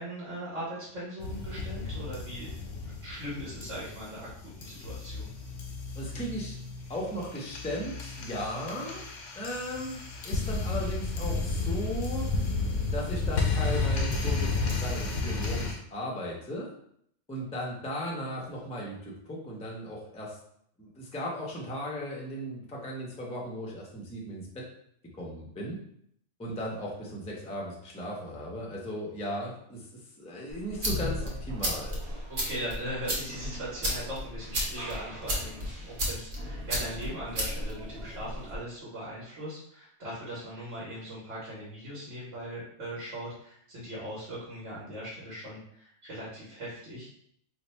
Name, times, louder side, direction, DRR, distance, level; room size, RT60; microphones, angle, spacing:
voice 1, 0.0-2.5 3.0-4.3 4.6-5.3 32.3-47.1, equal, 75° right, -8 dB, 1.4 m, -39 dB
sound 1, 1.2-15.7, left 3 dB, 85° left, 1.0 m, -32 dB
voice 2, 5.9-6.6 6.9-9.0 9.4-12.3 12.9-16.7 17.3-20.4 20.8-24.6 25.2-25.8 26.4-29.9 30.2-32.0, equal, 10° left, -3 dB, 0.3 m, -36 dB
sound 2, 30.5-38.6, equal, 50° right, 0.9 m, -34 dB
2.9 x 2.1 x 4.1 m, 0.69 s
omnidirectional pair, 1.3 m